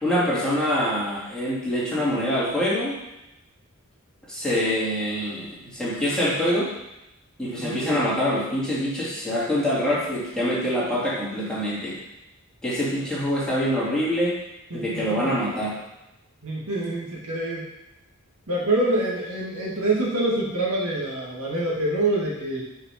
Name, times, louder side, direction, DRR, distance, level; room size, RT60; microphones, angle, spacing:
voice 1, 0.0-2.9 4.3-6.7 7.4-12.0 12.6-14.4 14.7-15.7, equal, 5° left, -9 dB, 2.5 m, -25 dB
voice 2, 7.6-8.0 14.7-15.3 16.4-17.6 18.5-22.6, right 2 dB, 70° right, -4 dB, 2.0 m, -26 dB
5.8 x 5.0 x 5.8 m, 0.92 s
head